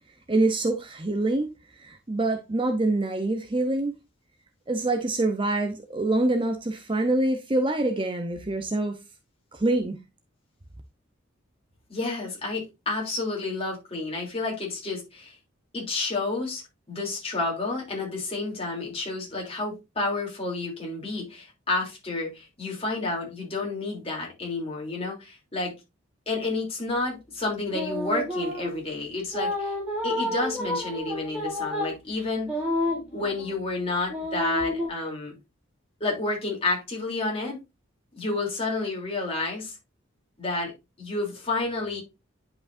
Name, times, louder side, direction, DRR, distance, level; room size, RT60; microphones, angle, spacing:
voice 1, 0.3-1.5 1.8-3.9 4.7-9.0 9.5-10.0, right 2 dB, 25° right, 0.7 m, -25 dB
voice 2, 11.9-15.3 15.7-16.6 16.9-25.7 26.3-29.7 30.0-32.5 33.1-35.4 36.0-37.6 38.2-39.7 40.4-40.7 41.0-42.0, left 3 dB, 30° left, 3.2 m, -30 dB
sound 1, 27.7-28.8 29.3-33.6 34.1-34.9, left 1 dB, 5° right, 4.0 m, -30 dB
10.5 x 5.3 x 2.6 m
head